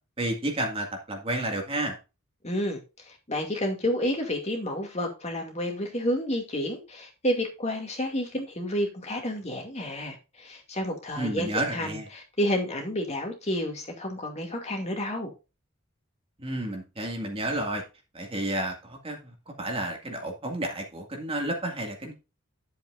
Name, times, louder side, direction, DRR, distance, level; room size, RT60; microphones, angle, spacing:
voice 1, 0.2-2.0 11.2-12.1 16.4-17.8 18.1-19.2 19.5-22.1, right 1 dB, 25° right, 2.0 m, -31 dB
voice 2, 2.4-2.8 3.1-15.3, equal, 30° left, 2.3 m, -30 dB
11.0 x 7.9 x 2.5 m
head